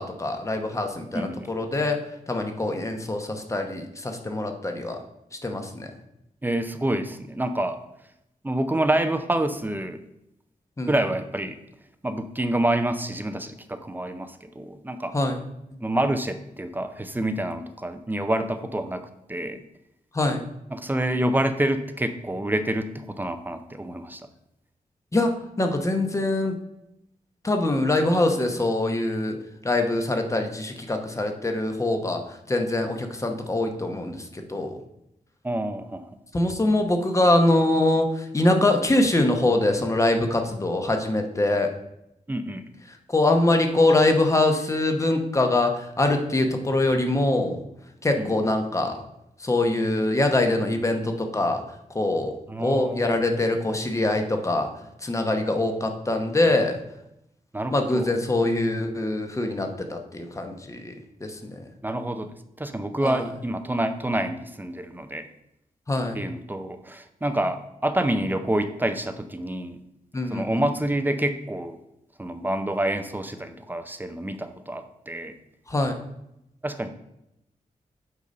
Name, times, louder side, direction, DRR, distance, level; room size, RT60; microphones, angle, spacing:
voice 1, 0.0-2.0 2.3-5.0 5.4-5.9 10.8-11.0 15.1-15.4 20.1-20.5 25.1-26.5 27.4-29.4 29.6-32.2 32.5-34.8 36.3-41.7 42.9-47.6 48.0-48.9 49.4-51.6 51.9-52.3 52.6-54.7 55.0-56.8 57.7-60.9 61.2-61.6 63.0-63.3 65.9-66.2 70.1-70.6 75.7-75.9, left 2 dB, 20° left, 5 dB, 0.9 m, -23 dB
voice 2, 1.1-1.5 6.4-7.8 8.4-10.0 10.9-11.6 12.0-15.2 15.8-19.6 20.7-24.2 35.4-36.1 42.3-42.7 48.2-48.3 52.5-53.0 57.5-58.1 61.8-65.3 66.1-69.8 70.3-71.8 72.2-75.3 76.6-76.9, right 1 dB, 15° right, 9 dB, 0.5 m, -27 dB
8.3 x 4.1 x 5.2 m, 0.83 s
wide cardioid pair, 170°, 14 cm